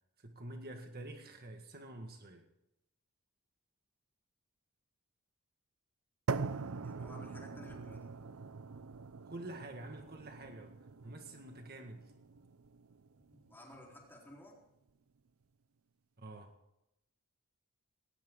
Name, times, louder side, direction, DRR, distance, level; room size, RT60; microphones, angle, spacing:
voice 1, 0.2-2.4 9.3-10.8 11.0-12.0 16.2-16.5, right 1 dB, 45° right, 4 dB, 1.7 m, -47 dB
sound 1, 6.3-14.3, right 4 dB, 70° right, 0.7 m, -43 dB
voice 2, 6.8-8.1 13.5-14.6, left 1 dB, 10° left, -2 dB, 3.9 m, -54 dB
19.5 x 19.0 x 3.8 m, 0.86 s
head